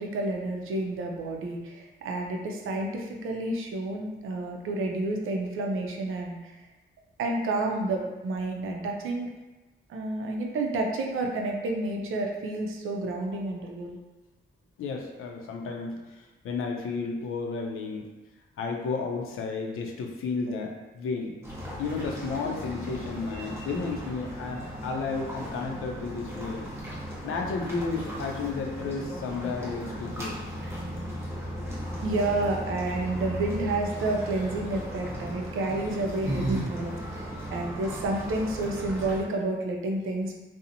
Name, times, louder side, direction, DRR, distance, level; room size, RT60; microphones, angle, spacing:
voice 1, 0.0-6.4 7.2-9.3 9.9-14.0 20.5-20.7 32.0-40.3, right 2 dB, 85° right, 1 dB, 0.4 m, -30 dB
voice 2, 14.8-18.0 18.6-21.3 21.8-26.7 27.2-30.3, left 4 dB, 90° left, 2 dB, 0.4 m, -32 dB
sound 1, 21.4-39.2, equal, 15° right, 0.7 m, -37 dB
sound 2, 34.2-34.6 35.6-36.6 36.9-37.0 38.7-38.8 39.0-39.4, right 2 dB, 45° right, 0.8 m, -32 dB
2.8 x 2.0 x 2.5 m, 1.1 s
wide cardioid pair, 120°, 21 cm